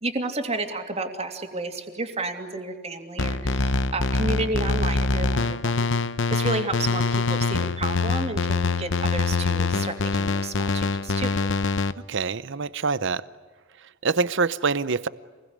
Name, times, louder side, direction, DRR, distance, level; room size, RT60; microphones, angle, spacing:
voice 1, 0.0-5.9 6.3-11.3, right 2 dB, 30° right, 5 dB, 2.9 m, -31 dB
sound 1, 3.2-11.9, left 3 dB, 65° left, 0.9 m, -24 dB
voice 2, 12.1-13.2 14.0-15.1, right 4 dB, 60° right, 16 dB, 0.7 m, -25 dB
27.5 x 21.5 x 9.8 m, 1.4 s
head